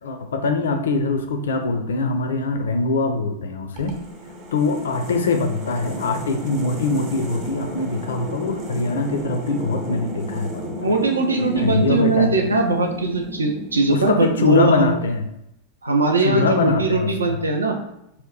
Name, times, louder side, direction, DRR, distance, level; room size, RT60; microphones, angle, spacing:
voice 1, 0.0-4.0 4.5-10.9 11.4-12.5 13.9-15.3 16.2-17.4, left 3 dB, 65° left, 6 dB, 0.4 m, -23 dB
sound 1, 3.8-14.8, left 1 dB, 45° right, 0.7 m, -34 dB
voice 2, 10.8-15.0 15.8-17.8, right 3 dB, 75° right, 3 dB, 0.4 m, -20 dB
2.8 x 2.2 x 3.6 m, 0.80 s
figure-of-eight pair, 90°, 0 cm